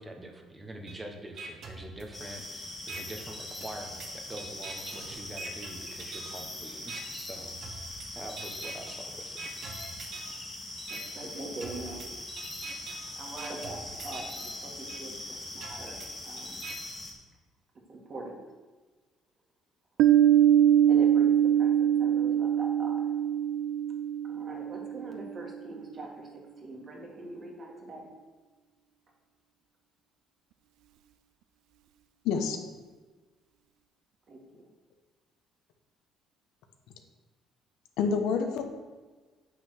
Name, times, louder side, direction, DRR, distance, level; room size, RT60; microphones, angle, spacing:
voice 1, 0.0-9.4, right 1 dB, 15° right, 4 dB, 1.3 m, -45 dB
sound 1, 0.9-1.0 1.4-2.4 2.9-3.0 3.6-6.4 6.9-7.0 7.6-8.1 8.4-8.9 9.4-10.4 10.9-11.0 11.6-14.4 14.9-15.0 15.6-16.7, right 3 dB, 50° right, 1.5 m, -43 dB
sound 2, 2.1-17.1, left 1 dB, 15° left, 1.8 m, -41 dB
voice 2, 10.9-12.0 13.2-16.6 17.9-18.4 20.9-23.1 24.2-28.1 34.3-34.6, right 2 dB, 35° right, 0 dB, 2.0 m, -43 dB
Piano, 20.0-25.4, right 10 dB, 80° right, 0.5 m, -23 dB
voice 3, 32.2-32.6 38.0-38.6, left 5 dB, 85° left, 5 dB, 1.2 m, -27 dB
8.8 x 6.0 x 6.3 m, 1.3 s
cardioid pair, 145°, 0 cm